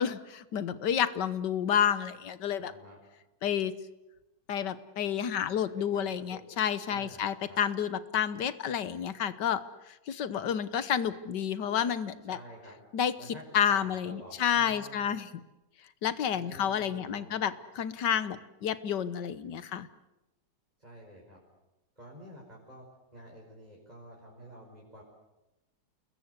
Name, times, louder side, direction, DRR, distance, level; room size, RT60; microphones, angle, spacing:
voice 1, 0.0-2.7 3.4-3.7 4.5-9.6 10.1-12.4 12.9-15.3 16.0-19.9, left 8 dB, 70° left, 14 dB, 1.7 m, -30 dB
voice 2, 2.6-3.0 5.7-7.6 12.3-12.8 13.2-13.4 13.7-15.2 16.3-17.3 20.8-21.4 22.0-22.8 23.1-25.0, right 1 dB, 20° right, -3 dB, 5.6 m, -49 dB
29.5 x 21.0 x 8.2 m, 0.97 s
omnidirectional pair, 1.9 m